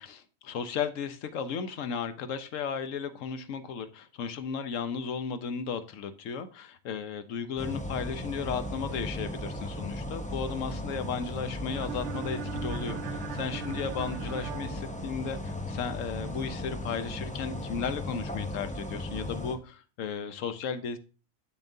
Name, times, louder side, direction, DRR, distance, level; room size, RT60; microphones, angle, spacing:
voice 1, 0.0-21.0, left 6 dB, 75° left, 11 dB, 1.1 m, -35 dB
sound 1, 7.6-19.5, left 1 dB, 10° left, 0.4 m, -36 dB
sound 2, 11.7-15.6, right 10 dB, 70° right, 0.8 m, -40 dB
8.0 x 7.0 x 2.7 m, 0.35 s
omnidirectional pair, 1.4 m